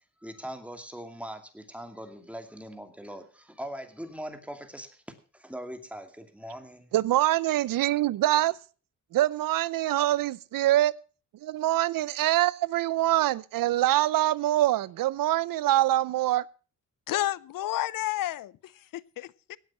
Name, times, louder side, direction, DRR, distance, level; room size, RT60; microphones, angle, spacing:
voice 1, 0.2-5.0 5.3-6.9, equal, 5° right, 2.5 m, -41 dB
voice 2, 6.9-8.6 9.1-10.9 11.4-16.4, right 14 dB, 85° right, 0.6 m, -24 dB
voice 3, 17.1-19.6, left 14 dB, 75° left, 0.6 m, -31 dB
17.5 x 8.0 x 5.9 m
cardioid pair, 90°, 33 cm